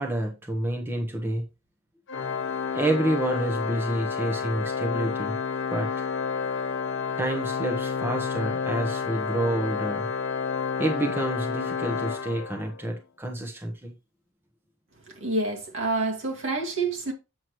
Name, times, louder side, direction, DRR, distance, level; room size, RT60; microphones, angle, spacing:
voice 1, 0.0-1.4 2.7-5.4 5.7-6.0 7.2-10.1 10.8-13.9, right 1 dB, 10° right, 1.0 m, -29 dB
Organ, 2.1-12.9, left 6 dB, 55° left, 0.6 m, -30 dB
voice 2, 15.1-17.1, right 3 dB, 60° right, 2.1 m, -28 dB
7.7 x 6.4 x 3.1 m
head